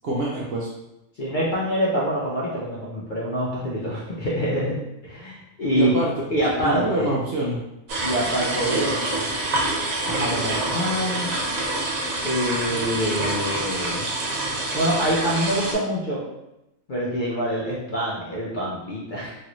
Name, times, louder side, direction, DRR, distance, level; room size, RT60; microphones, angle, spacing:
voice 1, 0.0-0.7 5.7-6.1 6.6-7.6, right 2 dB, 65° right, -3 dB, 0.6 m, -25 dB
voice 2, 1.2-4.8 5.0-5.9 6.3-7.1 8.0-9.3 10.1-11.3 12.2-14.1 14.7-16.2 16.9-19.4, equal, 55° left, -6 dB, 0.5 m, -25 dB
sound 1, 7.9-15.7, right 2 dB, 85° right, 1.2 m, -26 dB
3.0 x 2.5 x 3.0 m, 0.90 s
omnidirectional pair, 1.4 m